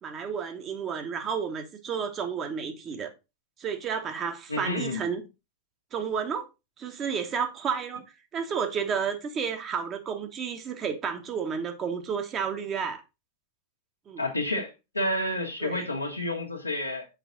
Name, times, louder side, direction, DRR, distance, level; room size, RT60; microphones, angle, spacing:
voice 1, 0.0-3.1 3.6-5.2 5.9-6.5 6.8-8.0 8.3-13.0 14.1-14.2 15.6-15.8, right 6 dB, 30° right, 1.1 m, -31 dB
voice 2, 4.5-5.0 14.2-17.1, left 1 dB, 85° left, 1.3 m, -30 dB
5.9 x 5.1 x 3.8 m
figure-of-eight pair, 90°, 0 cm